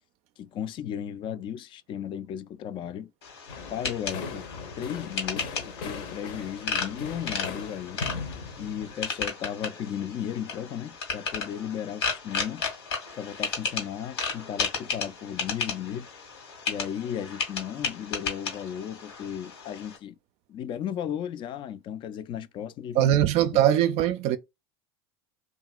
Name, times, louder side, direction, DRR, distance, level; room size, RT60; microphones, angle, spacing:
voice 1, 0.4-3.1 3.7-4.5 4.8-5.5 5.8-8.0 8.6-12.6 13.2-16.1 16.7-20.2 20.5-23.2, left 9 dB, 40° left, 0.3 m, -35 dB
sound 1, 3.2-20.0, left 5 dB, 80° left, 1.5 m, -34 dB
sound 2, 3.5-8.9, left 4 dB, 60° left, 0.9 m, -39 dB
voice 2, 22.9-24.4, right 11 dB, 55° right, 0.4 m, -21 dB
2.8 x 2.5 x 2.4 m
hypercardioid pair, 90°, 13 cm